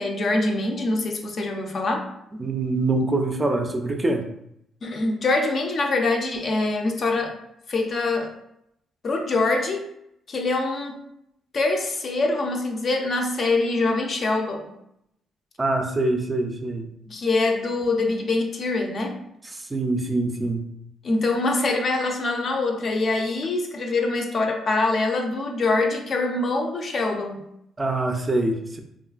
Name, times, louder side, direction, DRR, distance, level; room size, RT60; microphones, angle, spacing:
voice 1, 0.0-2.1 4.8-7.4 7.7-8.4 9.0-9.9 10.3-11.0 11.5-14.7 17.1-19.2 21.0-27.5, left 2 dB, 50° left, 3 dB, 0.4 m, -24 dB
voice 2, 2.3-4.2 15.6-17.2 19.4-20.7 27.8-28.8, right 2 dB, 25° right, 4 dB, 0.4 m, -25 dB
2.9 x 2.4 x 2.4 m, 0.76 s
cardioid pair, 90°, 0 cm